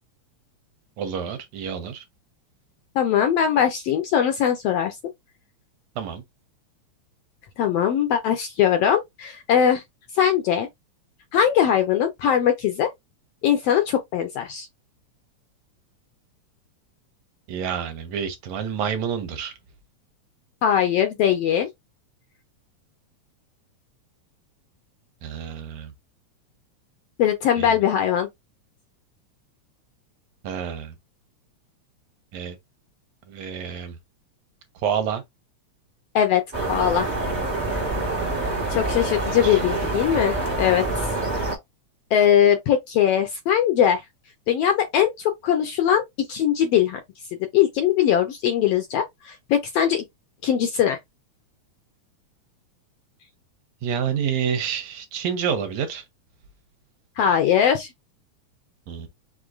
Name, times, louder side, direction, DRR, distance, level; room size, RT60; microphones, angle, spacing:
voice 1, 1.0-2.0 6.0-6.2 17.5-19.6 25.2-25.9 27.6-27.8 30.4-31.0 32.3-32.6 33.3-34.0 34.8-35.2 38.2-38.7 39.0-39.1 39.4-39.6 53.8-56.1 58.9-59.1, right 7 dB, 75° right, 1.9 m, -28 dB
voice 2, 2.9-5.0 7.6-9.8 10.1-10.7 11.3-12.9 13.4-14.7 20.6-21.7 27.2-28.3 36.1-37.1 38.7-41.1 42.1-44.0 44.5-47.0 47.5-50.0 50.4-51.0 57.2-57.9, left 9 dB, 80° left, 1.4 m, -21 dB
sound 1, 36.5-41.5, right 2 dB, 40° right, 0.6 m, -26 dB
5.0 x 3.7 x 2.4 m
omnidirectional pair, 3.4 m